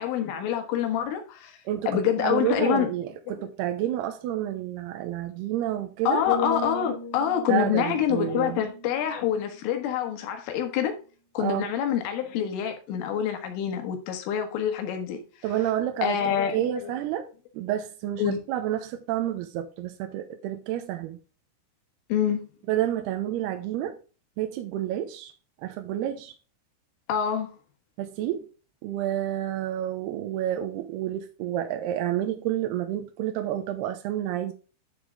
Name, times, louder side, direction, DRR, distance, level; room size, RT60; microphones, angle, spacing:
voice 1, 0.0-1.6 1.9-2.9 6.1-11.0 11.4-15.2 16.0-16.9 18.2-18.4 22.1-22.4 27.1-27.5, left 9 dB, 85° left, 4.1 m, -26 dB
voice 2, 2.2-6.2 7.5-8.6 11.4-11.7 15.4-17.3 17.5-21.2 22.7-24.0 24.4-25.3 25.6-26.3 28.0-28.5 28.8-34.5, right 12 dB, 80° right, 2.4 m, -29 dB
sound 1, 6.3-10.2 10.6-10.9, left 4 dB, 60° left, 3.7 m, -36 dB
11.5 x 5.0 x 3.6 m
omnidirectional pair, 5.6 m